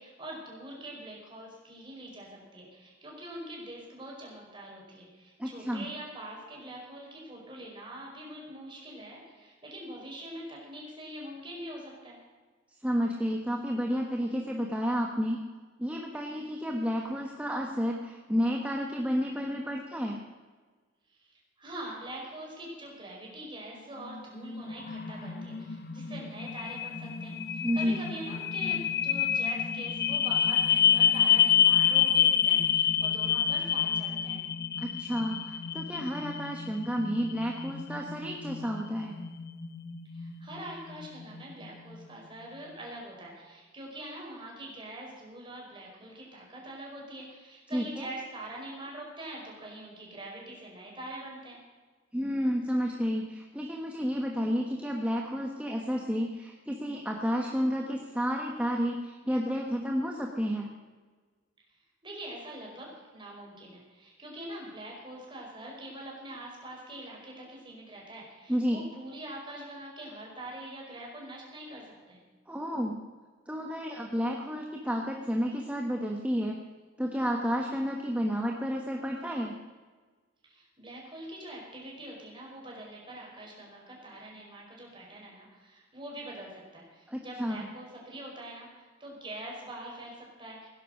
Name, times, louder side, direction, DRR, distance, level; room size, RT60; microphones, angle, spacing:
voice 1, 0.0-12.2 21.1-34.4 40.1-51.6 62.0-72.2 80.4-90.7, right 1 dB, 25° right, -2 dB, 5.0 m, -44 dB
voice 2, 5.4-5.9 12.8-15.4 15.8-20.2 27.6-28.0 34.8-39.1 47.7-48.1 52.1-60.7 68.5-68.8 72.5-73.0 73.5-76.6 77.0-79.6 87.1-87.7, equal, 5° right, 1 dB, 1.2 m, -31 dB
sound 1, 24.0-42.1, left 8 dB, 55° left, 1.0 m, -28 dB
17.5 x 10.5 x 6.4 m, 1.4 s
head